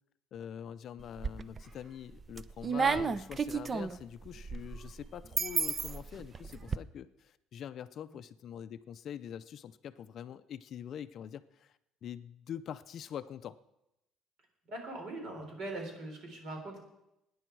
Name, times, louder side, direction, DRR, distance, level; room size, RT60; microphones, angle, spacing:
voice 1, 0.3-11.7 12.0-13.6, left 9 dB, 45° left, 12 dB, 0.5 m, -44 dB
sound 1, 1.0-1.7 2.1-6.8, right 5 dB, 20° right, 0.4 m, -33 dB
voice 2, 14.7-16.8, right 2 dB, 50° right, 3 dB, 4.0 m, -41 dB
20.5 x 10.0 x 4.6 m, 0.88 s
cardioid pair, 155°, 0 cm